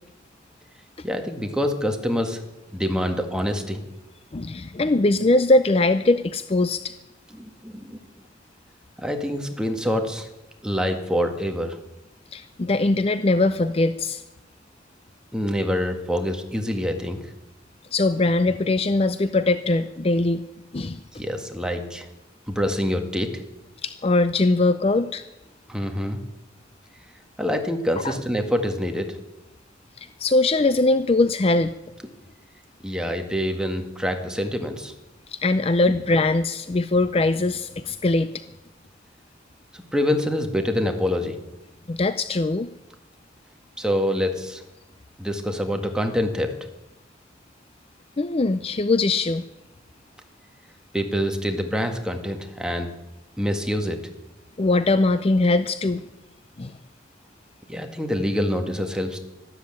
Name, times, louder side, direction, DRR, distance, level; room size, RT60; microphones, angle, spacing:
voice 1, 1.0-2.4 2.7-3.8 7.4-8.0 9.0-10.3 10.6-11.8 15.3-17.2 21.1-22.1 22.5-23.4 25.7-26.2 27.4-29.2 32.8-34.9 39.7-41.4 43.8-44.6 45.2-46.5 50.9-52.9 53.4-54.0 57.7-59.2, equal, 5° right, 5 dB, 1.7 m, -26 dB
voice 2, 4.3-6.9 12.3-14.2 17.9-20.4 20.7-21.0 23.8-25.2 28.0-28.2 30.0-31.7 35.3-38.4 41.9-42.7 48.2-49.4 54.6-56.0 56.6-56.8, left 2 dB, 30° left, 13 dB, 0.5 m, -21 dB
13.0 x 13.0 x 8.8 m, 0.94 s
head